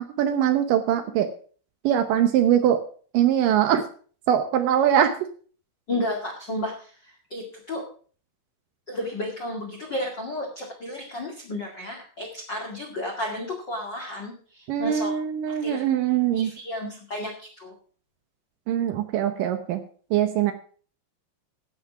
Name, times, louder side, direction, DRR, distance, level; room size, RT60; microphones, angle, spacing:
voice 1, 0.2-1.3 1.8-2.8 3.1-3.9 4.3-5.2 14.7-16.5 18.7-19.8 20.1-20.5, right 10 dB, 90° right, 8 dB, 1.9 m, -22 dB
voice 2, 5.9-7.8 8.9-15.1 15.5-15.9 16.3-17.7, left 1 dB, 35° left, -1 dB, 1.8 m, -33 dB
16.0 x 6.0 x 6.0 m, 0.43 s
omnidirectional pair, 5.2 m